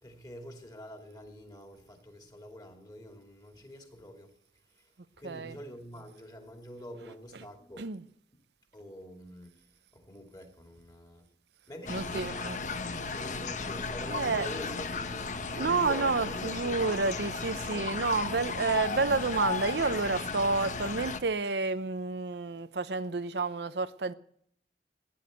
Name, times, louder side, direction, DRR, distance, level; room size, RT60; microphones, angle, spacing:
voice 1, 0.0-4.3 5.2-8.0 8.7-9.5 9.9-11.3 11.7-12.6 13.1-17.9, equal, 20° left, 2.6 m, -46 dB
voice 2, 5.2-5.6 7.0-7.5 7.8-8.1 11.9-12.6 13.0-13.2 13.9-14.5 15.6-24.1, right 3 dB, 75° right, 0.7 m, -30 dB
sound 1, 11.9-21.2, left 4 dB, 45° left, 0.9 m, -35 dB
15.5 x 10.5 x 8.0 m
head